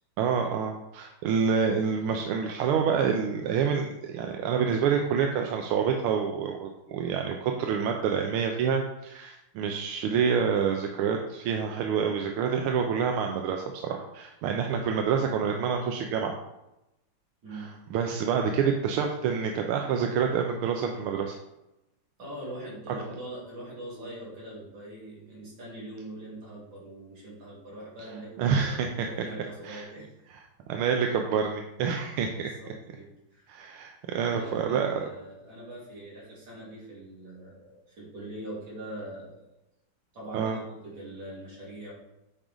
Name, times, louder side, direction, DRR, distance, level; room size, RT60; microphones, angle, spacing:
voice 1, 0.2-16.3 17.5-21.4 28.4-29.1 29.6-29.9 30.7-32.5 33.5-35.0 40.3-40.6, right 6 dB, 90° right, 3 dB, 1.6 m, -27 dB
voice 2, 22.2-30.1 32.3-33.5 34.1-39.5 40.1-41.9, right 1 dB, 65° right, -6 dB, 4.0 m, -42 dB
9.2 x 5.0 x 3.8 m, 0.91 s
omnidirectional pair, 2.3 m